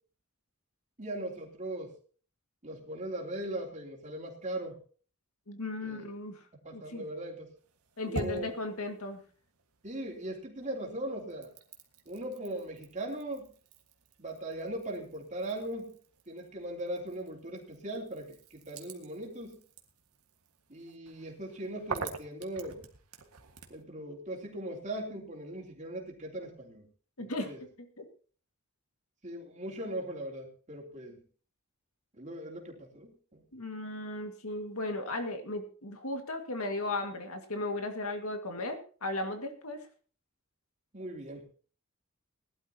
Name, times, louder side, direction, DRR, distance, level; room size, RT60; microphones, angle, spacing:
voice 1, 1.0-1.9 2.6-4.8 5.8-6.0 6.6-7.5 8.0-8.5 9.8-11.5 12.0-13.5 14.2-15.9 16.3-19.6 20.7-22.8 23.7-26.9 27.2-27.6 29.2-31.2 32.2-33.4 40.9-41.4, right 1 dB, 35° right, -1 dB, 3.3 m, -39 dB
voice 2, 5.5-6.4 6.7-7.0 8.0-9.2 27.2-27.5 28.0-28.1 33.5-39.8, left 2 dB, 75° left, 5 dB, 2.0 m, -36 dB
intento de aceite, 7.6-10.2 10.6-23.8, right 3 dB, 90° right, 1.8 m, -47 dB
20.0 x 12.0 x 2.9 m, 0.41 s
head